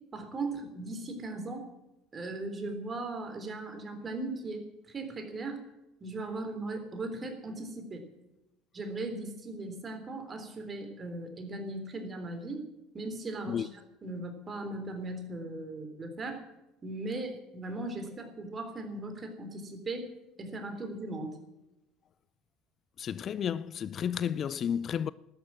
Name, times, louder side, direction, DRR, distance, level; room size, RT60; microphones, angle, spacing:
voice 1, 0.1-1.7 2.1-5.6 6.0-8.1 8.7-12.6 12.9-13.7 14.0-16.4 16.8-20.1 20.4-21.4, right 2 dB, 30° right, 3.6 m, -38 dB
voice 2, 23.0-25.1, left 8 dB, 45° left, 0.4 m, -32 dB
12.5 x 9.8 x 7.3 m
hypercardioid pair, 65°, 0 cm